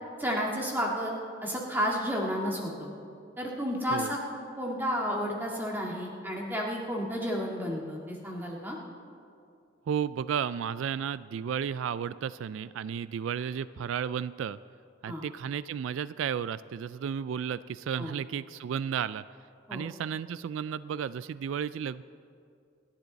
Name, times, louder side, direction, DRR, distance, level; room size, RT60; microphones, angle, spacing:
voice 1, 0.2-1.1 1.4-2.9 3.4-8.8 15.1-15.2 18.0-18.1 19.7-19.8, equal, 10° right, -2 dB, 1.9 m, -32 dB
voice 2, 9.9-14.6 15.0-19.2 19.7-22.0, right 8 dB, 80° right, 17 dB, 0.3 m, -33 dB
27.0 x 10.5 x 4.0 m, 2.4 s
head